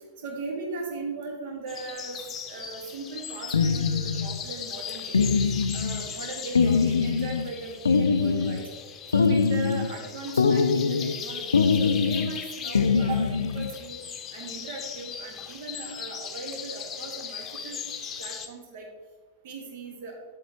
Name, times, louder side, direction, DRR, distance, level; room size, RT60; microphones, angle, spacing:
voice 1, 0.2-2.2 2.5-5.2 5.7-8.6 9.1-14.0 14.3-17.8 18.2-18.9 19.4-20.2, right 3 dB, 50° right, 1 dB, 1.7 m, -38 dB
sound 1, 1.7-18.5, left 7 dB, 25° left, 0.8 m, -38 dB
sound 2, 3.5-4.4 5.1-6.1 6.6-7.5 7.9-8.7 9.1-10.0 10.4-11.2 11.5-12.4 12.8-13.7, left 5 dB, 75° left, 0.3 m, -23 dB
9.5 x 7.9 x 3.0 m, 1.5 s
figure-of-eight pair, 90°, 0 cm